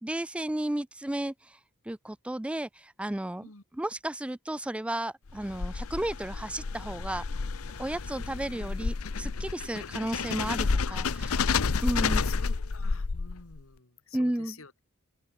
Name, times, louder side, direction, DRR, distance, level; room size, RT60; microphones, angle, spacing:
voice 1, 0.0-1.6 1.9-3.5 3.8-7.2 7.8-11.0 11.5-12.2 14.1-14.5, right 1 dB, 5° right, 0.3 m, -33 dB
sound 1, 5.3-13.6, left 4 dB, 85° left, 0.8 m, -30 dB
voice 2, 12.2-14.8, left 5 dB, 70° left, 3.0 m, -48 dB
open air
head